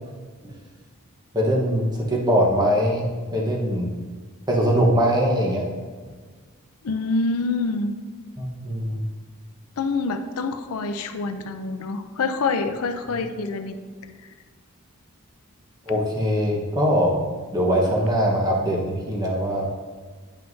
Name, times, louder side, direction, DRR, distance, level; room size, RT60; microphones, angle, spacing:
voice 1, 1.3-3.9 4.5-5.7 8.4-9.0 15.9-17.2 17.5-19.7, equal, 20° right, -3 dB, 1.1 m, -22 dB
voice 2, 6.8-7.9 9.8-13.8, left 3 dB, 80° left, 9 dB, 0.5 m, -26 dB
9.1 x 5.6 x 2.7 m, 1.5 s
head